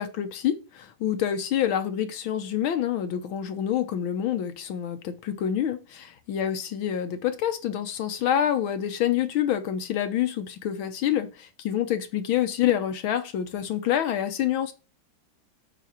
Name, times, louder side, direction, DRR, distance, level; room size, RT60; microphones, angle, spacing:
voice 1, 0.0-14.7, left 10 dB, 70° left, 1.5 m, -27 dB
8.4 x 4.1 x 5.6 m
omnidirectional pair, 2.4 m